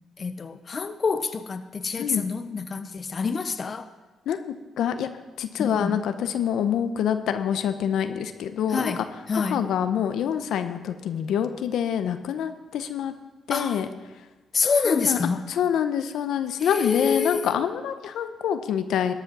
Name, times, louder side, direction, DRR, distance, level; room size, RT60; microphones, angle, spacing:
voice 1, 0.2-3.8 5.6-6.0 8.7-9.6 13.5-13.8 14.5-15.4 16.6-17.5, left 5 dB, 40° left, 0.7 m, -27 dB
voice 2, 4.8-5.1 5.4-8.9 9.3-13.1 13.5-13.9 14.8-15.2 15.5-19.1, left 9 dB, 75° left, 0.8 m, -26 dB
13.0 x 8.4 x 6.1 m
cardioid pair, 90°, 0 cm